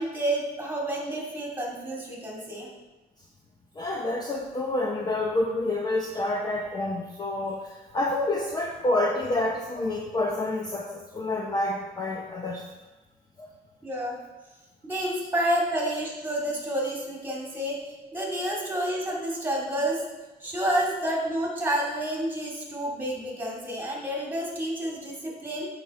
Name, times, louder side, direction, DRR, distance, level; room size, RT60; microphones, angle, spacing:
voice 1, 0.0-2.7 13.8-14.2 14.8-17.8 18.1-20.0 20.4-25.7, right 1 dB, 10° right, -2 dB, 2.4 m, -29 dB
voice 2, 3.8-12.6 13.4-13.5 15.2-15.3, left 2 dB, 25° left, 0 dB, 0.8 m, -28 dB
8.0 x 5.8 x 4.3 m, 1.1 s
cardioid pair, 110°, 17 cm